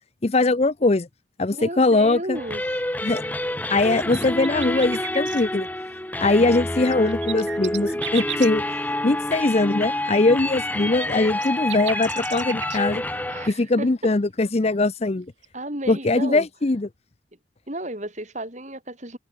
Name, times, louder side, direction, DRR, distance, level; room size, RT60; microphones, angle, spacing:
voice 1, 0.2-1.1 1.4-2.4 3.0-3.2 3.7-5.7 6.2-8.6 9.0-13.0 13.5-15.3 15.9-16.9, left 2 dB, 30° left, 0.6 m, -21 dB
voice 2, 1.5-2.8 13.3-14.1 15.5-16.5 17.7-19.2, right 1 dB, 35° right, 6.4 m, -33 dB
sound 1, 2.3-13.5, left 1 dB, 10° left, 1.2 m, -28 dB
sound 2, 3.9-5.4 6.7-8.5 10.1-12.8 15.4-15.5, right 11 dB, 70° right, 4.4 m, -35 dB
head